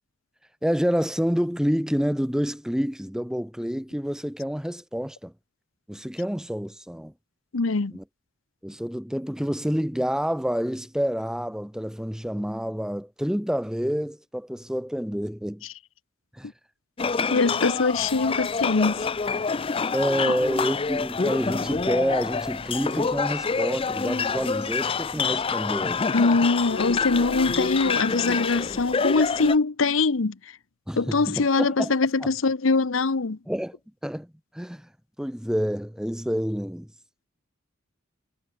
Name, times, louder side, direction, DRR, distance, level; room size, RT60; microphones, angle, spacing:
voice 1, 0.6-5.3 5.9-7.1 7.9-8.0 8.6-15.6 16.3-16.5 19.9-26.0 30.9-31.9 33.5-33.7 34.0-34.3 34.5-34.9 35.2-36.9, equal, 5° right, 0.9 m, -28 dB
voice 2, 7.5-7.9 17.3-19.1 20.3-20.4 26.1-30.5 31.0-33.4, left 3 dB, 70° left, 0.8 m, -23 dB
sound 1, 17.0-29.6, left 5 dB, 25° left, 0.5 m, -27 dB
head